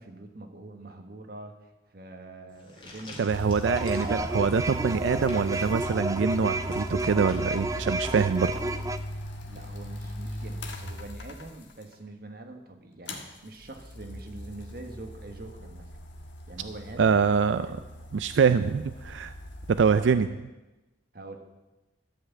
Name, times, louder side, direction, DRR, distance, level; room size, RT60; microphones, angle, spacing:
voice 1, 0.0-4.1 9.5-15.9 16.5-17.2 17.6-17.8 19.9-20.3 21.1-21.4, right 2 dB, 55° right, 4 dB, 1.4 m, -44 dB
sound 1, 2.5-9.1, left 1 dB, 25° left, 2.3 m, -48 dB
voice 2, 3.2-8.5 17.0-17.7 18.1-19.3 19.7-20.3, right 6 dB, 90° right, 12 dB, 0.4 m, -24 dB
sound 2, 3.3-11.9 13.0-20.1, equal, 90° left, 1.5 m, -39 dB
sound 3, 3.6-9.0, right 2 dB, 20° right, 0.4 m, -31 dB
13.0 x 5.8 x 8.2 m, 1.1 s
head